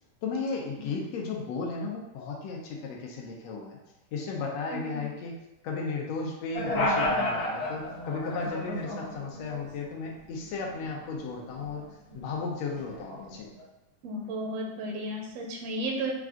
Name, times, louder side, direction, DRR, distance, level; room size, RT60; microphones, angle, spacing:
voice 1, 0.2-3.8 4.1-5.4 5.6-13.5, left 4 dB, 85° left, -1 dB, 1.4 m, -35 dB
voice 2, 4.7-5.0 14.0-16.1, right 1 dB, 85° right, 0 dB, 1.4 m, -33 dB
sound 1, 6.5-9.9 10.2-11.8 12.1-13.6, left 1 dB, 65° left, 1.2 m, -32 dB
5.9 x 2.5 x 3.6 m, 0.96 s
omnidirectional pair, 3.7 m